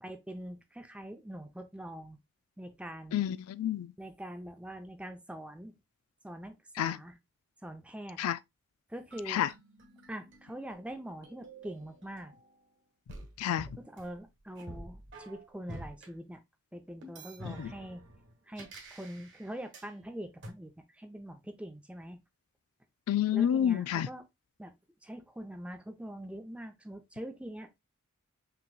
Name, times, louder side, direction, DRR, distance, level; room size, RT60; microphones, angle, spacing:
voice 1, 0.0-2.2 2.6-3.2 4.0-5.7 6.2-7.2 7.6-8.2 8.9-9.4 10.1-12.3 13.8-16.4 16.7-18.0 18.5-22.2 23.3-24.2 24.6-24.7 25.0-27.7, right 1 dB, 5° right, 0.5 m, -43 dB
voice 2, 3.1-3.9 6.8-7.0 8.2-8.4 9.3-9.5 13.4-13.7 17.6-17.7 23.1-24.1, left 10 dB, 75° left, 0.3 m, -29 dB
sound 1, 9.1-12.6 13.1-16.1 17.0-19.9 20.4-20.5, right 1 dB, 55° right, 1.4 m, -49 dB
5.9 x 3.0 x 2.2 m
head